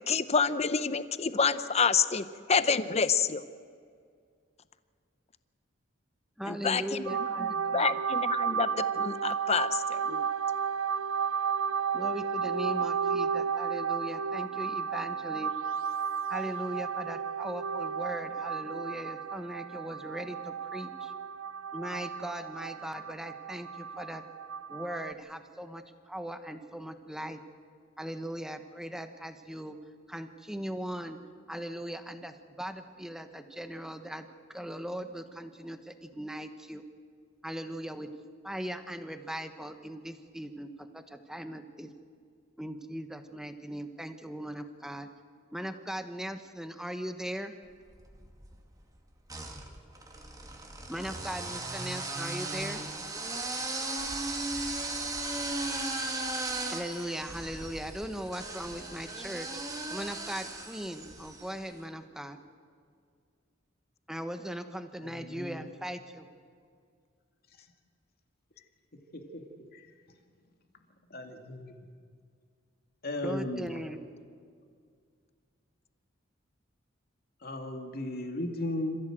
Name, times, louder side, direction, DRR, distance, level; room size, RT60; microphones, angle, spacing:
voice 1, 0.1-3.4 6.5-10.3, left 5 dB, 35° left, 13 dB, 0.7 m, -28 dB
voice 2, 6.4-7.9 11.9-15.5 16.3-21.1 21.7-24.2 24.7-27.4 28.0-29.8 30.1-31.2 31.5-36.8 37.4-38.1 38.4-41.9 42.6-45.1 45.5-47.5 50.9-52.8 56.7-59.5 59.9-62.4 64.1-66.3 73.2-74.0, equal, 5° right, 8 dB, 1.2 m, -39 dB
sound 1, 7.0-25.1, right 6 dB, 85° right, 0.5 m, -33 dB
sound 2, 47.9-48.6 49.3-61.6, right 2 dB, 20° right, 2.4 m, -37 dB
voice 3, 65.0-65.6 69.1-69.4 69.7-69.9 71.1-71.8 73.0-73.7 77.4-79.0, left 1 dB, 50° left, 4 dB, 2.4 m, -36 dB
27.0 x 15.5 x 7.8 m, 2.1 s
head